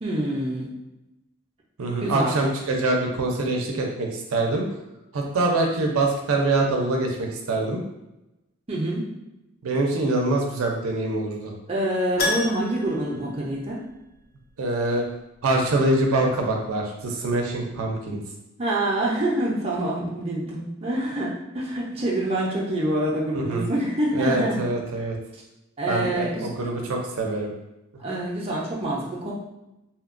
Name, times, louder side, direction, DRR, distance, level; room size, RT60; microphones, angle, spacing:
voice 1, 0.0-0.7 2.0-2.4 8.7-9.0 11.7-13.8 18.6-24.6 25.0-25.1 25.3-25.4 25.8-26.7 28.0-29.3, right 1 dB, 25° right, -4 dB, 0.5 m, -26 dB
voice 2, 1.8-4.6 5.1-7.8 9.6-11.5 14.6-15.0 15.4-18.2 23.3-23.7 24.1-25.2 25.9-27.5 28.1-28.2, right 2 dB, 80° right, 1 dB, 0.5 m, -24 dB
Keyboard (musical), 12.2-14.2 14.5-14.6 17.3-17.4 17.6-17.7, left 2 dB, 45° left, 0.4 m, -30 dB
2.8 x 2.1 x 2.4 m, 0.93 s
head